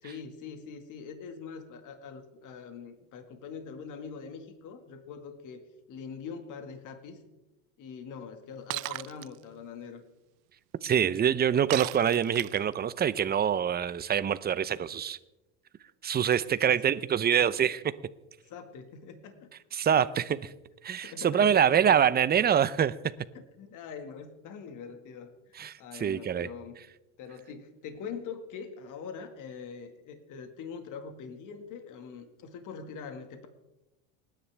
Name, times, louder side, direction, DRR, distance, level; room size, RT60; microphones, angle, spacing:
voice 1, 0.0-5.6 5.9-7.2 7.8-10.0 16.7-16.8 18.4-19.5 21.0-22.0 23.3-26.8 27.2-33.5, left 6 dB, 50° left, 6 dB, 2.0 m, -43 dB
Shatter, 8.7-9.3 11.7-12.7, right 24 dB, 55° right, 0.4 m, -35 dB
voice 2, 10.8-15.2 16.0-17.8 19.7-20.5 20.8-22.9 25.6-26.5, right 8 dB, 25° right, 15 dB, 0.8 m, -25 dB
28.0 x 10.0 x 3.5 m, 0.98 s
supercardioid pair, 100°, 38 cm